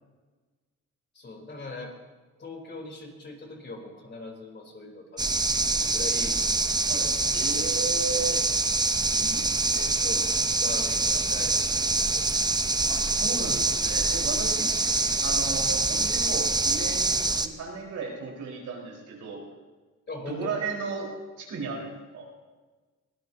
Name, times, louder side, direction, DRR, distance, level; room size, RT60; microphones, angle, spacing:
voice 1, 1.1-2.0 2.4-6.4 9.7-12.3 14.8-15.3 20.1-20.6, left 2 dB, 35° left, 1 dB, 3.7 m, -41 dB
sound 1, 5.2-17.5, right 3 dB, 15° right, 0.8 m, -25 dB
voice 2, 6.9-8.4 9.1-9.9 12.9-19.4 20.3-21.1 21.4-22.2, right 4 dB, 75° right, -2 dB, 4.6 m, -35 dB
23.0 x 16.5 x 2.8 m, 1.3 s
cardioid pair, 90°, 30 cm